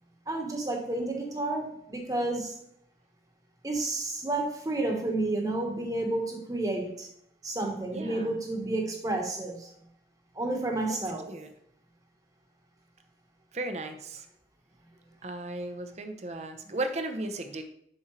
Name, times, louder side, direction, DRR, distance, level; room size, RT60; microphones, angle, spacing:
voice 1, 0.3-2.6 3.6-7.1 7.4-9.7 10.3-11.3, right 2 dB, 20° right, 2 dB, 1.3 m, -31 dB
voice 2, 7.9-8.4 10.9-11.0 11.3-11.5 13.5-14.3 15.2-17.6, right 2 dB, 40° right, 7 dB, 0.8 m, -35 dB
7.4 x 6.1 x 3.2 m, 0.70 s
head